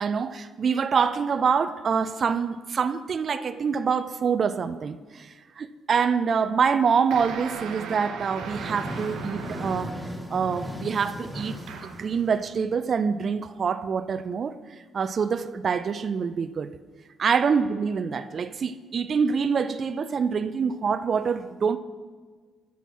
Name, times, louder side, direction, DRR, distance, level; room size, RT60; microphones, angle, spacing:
voice 1, 0.0-10.0 10.3-11.5 11.8-14.6 14.9-16.7 17.2-21.8, right 6 dB, 50° right, 0.4 m, -25 dB
sound 1, 7.1-10.1 11.3-12.1, right 6 dB, 85° right, 0.7 m, -38 dB
sound 2, 8.2-12.7, equal, 5° left, 1.1 m, -37 dB
7.0 x 6.0 x 6.0 m
cardioid pair, 90°, 0 cm